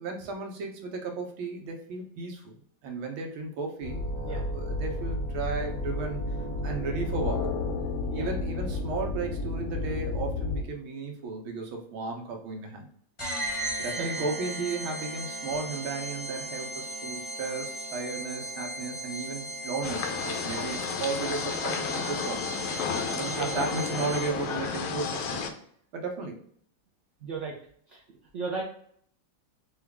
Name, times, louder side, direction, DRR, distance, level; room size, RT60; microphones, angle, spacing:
voice 1, 0.0-2.5 2.8-6.4 6.6-7.5 8.1-12.9 13.8-22.4 23.0-25.5 25.9-26.4, right 4 dB, 85° right, 2 dB, 1.7 m, -34 dB
sound 1, 3.8-10.6, left 2 dB, 65° left, 0.8 m, -31 dB
sound 2, 13.2-24.6, right 1 dB, 25° left, 0.7 m, -37 dB
sound 3, 19.8-25.5, left 6 dB, 85° left, 1.5 m, -32 dB
voice 2, 27.2-27.5 27.9-28.0 28.3-28.6, right 4 dB, 60° right, -2 dB, 0.8 m, -35 dB
5.5 x 2.3 x 3.5 m, 0.63 s
omnidirectional pair, 2.2 m